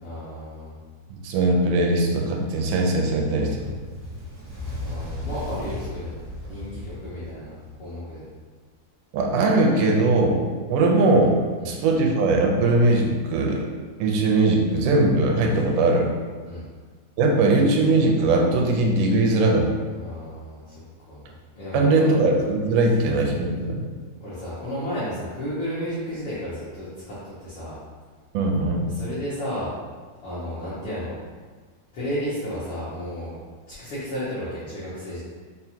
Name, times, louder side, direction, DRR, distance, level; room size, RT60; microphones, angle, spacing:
voice 1, 0.0-0.8 4.8-6.2 6.5-8.2 11.6-11.8 16.4-16.7 19.9-21.2 21.5-22.1 22.8-22.9 24.2-27.8 28.8-29.7 30.2-31.2 31.9-33.4 33.7-35.2, equal, 80° left, -11 dB, 1.2 m, -33 dB
voice 2, 1.1-3.6 9.1-10.4 10.7-11.4 11.6-13.6 14.0-16.1 17.2-19.7 21.7-23.8 28.3-28.9, right 2 dB, 85° right, 0 dB, 2.1 m, -20 dB
Fire, 3.4-7.9, left 1 dB, 70° right, 0.9 m, -35 dB
5.4 x 2.0 x 2.8 m, 1.5 s
omnidirectional pair, 3.5 m